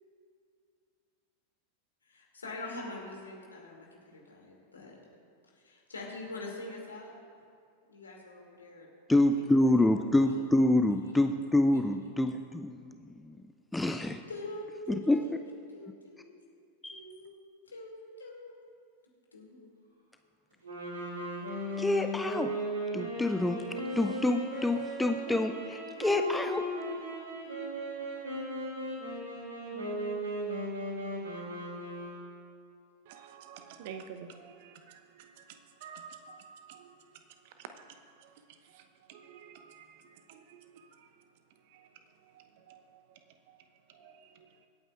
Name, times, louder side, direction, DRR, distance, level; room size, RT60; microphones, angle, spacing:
voice 1, 2.0-5.0 5.5-7.1 7.9-8.9 9.3-9.4 14.3-15.4 15.7-16.4 16.9-17.4 17.7-18.5 19.3-19.7, left 2 dB, 75° left, -1 dB, 2.5 m, -44 dB
voice 2, 9.1-13.4 13.7-14.2 15.1-15.2 16.8-17.0 21.8-22.5 22.9-23.6 24.0-26.6, left 1 dB, 5° left, 7 dB, 0.4 m, -27 dB
sound 1, 20.6-32.5, right 1 dB, 70° right, 2.9 m, -37 dB
voice 3, 33.1-41.1 41.6-41.9 42.2-43.6 43.9-44.6, right 7 dB, 50° right, 7 dB, 0.8 m, -51 dB
24.5 x 8.8 x 2.5 m, 2.3 s
figure-of-eight pair, 90°, 0 cm